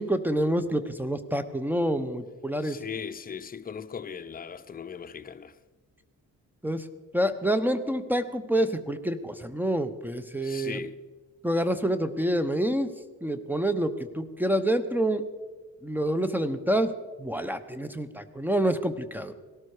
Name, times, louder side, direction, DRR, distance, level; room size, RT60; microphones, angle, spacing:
voice 1, 0.0-2.8 6.6-6.9 7.1-10.8 11.4-12.9 13.2-15.2 15.8-16.9 17.2-19.3, right 1 dB, 5° right, 0.9 m, -27 dB
voice 2, 2.6-5.5 10.4-11.0, left 7 dB, 30° left, 0.8 m, -38 dB
18.0 x 12.5 x 4.9 m
cardioid pair, 90°, 30 cm